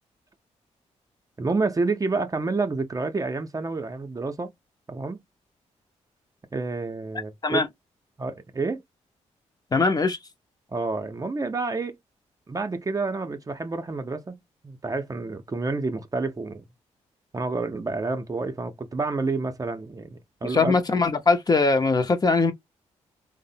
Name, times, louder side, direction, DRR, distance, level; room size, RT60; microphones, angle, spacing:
voice 1, 1.4-4.5 4.9-5.2 6.5-7.6 8.2-8.8 10.7-12.0 12.5-14.4 14.6-16.6 17.3-20.8, right 3 dB, 30° right, 0.5 m, -29 dB
voice 2, 9.7-10.2 20.4-22.5, left 4 dB, 30° left, 0.6 m, -21 dB
3.1 x 2.0 x 2.6 m
cardioid pair, 60°, 13 cm